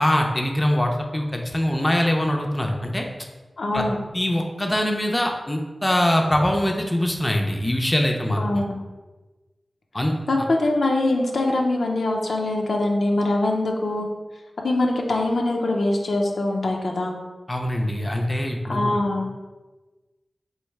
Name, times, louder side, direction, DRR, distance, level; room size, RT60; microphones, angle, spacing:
voice 1, 0.0-3.1 3.7-3.8 4.1-8.6 9.9-10.1 17.5-18.9, left 1 dB, 20° left, 2 dB, 0.5 m, -23 dB
voice 2, 3.6-4.0 8.4-8.7 10.3-14.1 14.6-17.1 18.7-19.3, left 2 dB, 80° left, 1 dB, 0.5 m, -23 dB
3.1 x 2.7 x 4.5 m, 1.2 s
wide cardioid pair, 70°, 0 cm